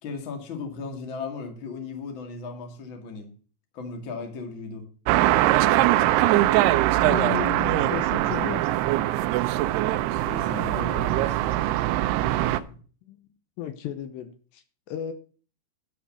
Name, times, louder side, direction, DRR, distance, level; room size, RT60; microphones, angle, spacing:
voice 1, 0.0-3.3 3.7-4.8 10.2-11.9 12.1-12.8, left 4 dB, 40° left, 3 dB, 2.1 m, -37 dB
sound 1, 5.1-12.6, right 15 dB, 80° right, 2.4 m, -22 dB
voice 2, 7.0-8.9 13.1-13.3 13.6-15.1, left 10 dB, 80° left, 9 dB, 3.0 m, -34 dB
11.5 x 5.9 x 7.2 m, 0.40 s
omnidirectional pair, 5.1 m